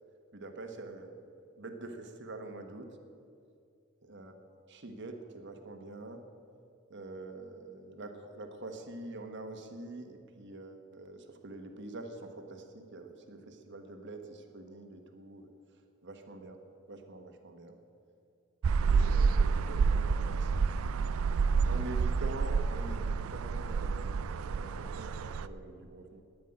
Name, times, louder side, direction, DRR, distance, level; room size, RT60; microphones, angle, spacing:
voice 1, 0.3-1.2 1.6-3.0 4.0-4.3 4.7-6.2 6.9-15.5 16.0-16.6 16.9-17.8 18.8-20.7 21.6-26.2, right 2 dB, 60° right, 5 dB, 1.3 m, -45 dB
sound 1, 18.6-25.5, right 5 dB, 90° right, 0.4 m, -29 dB
9.5 x 9.4 x 10.0 m, 2.4 s
head